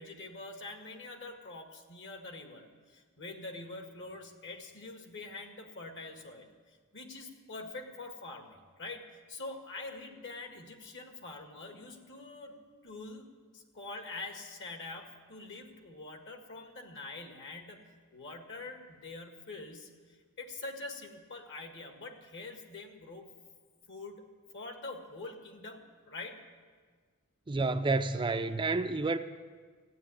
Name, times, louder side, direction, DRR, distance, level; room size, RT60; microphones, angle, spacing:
voice 1, 0.0-12.5 12.8-13.3 13.5-23.3 23.9-24.2 24.5-26.4, left 3 dB, 55° left, 1.9 m, -45 dB
voice 2, 27.5-29.2, right 3 dB, 20° right, 0.4 m, -29 dB
15.0 x 8.7 x 9.9 m
head